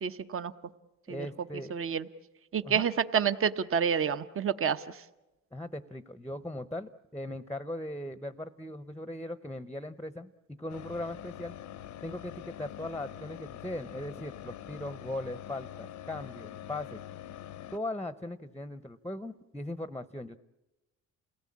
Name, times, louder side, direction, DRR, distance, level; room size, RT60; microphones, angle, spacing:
voice 1, 0.0-0.5 1.1-1.3 1.7-2.1 2.5-5.0, right 7 dB, 45° right, 12 dB, 1.0 m, -29 dB
voice 2, 1.1-1.7 2.6-2.9 5.5-11.6 12.0-17.0 17.7-20.4, left 1 dB, 5° left, 14 dB, 0.7 m, -39 dB
sound 1, 10.7-17.8, left 11 dB, 70° left, 0.7 m, -45 dB
28.5 x 17.5 x 8.6 m, 1.0 s
cardioid pair, 90°, 30 cm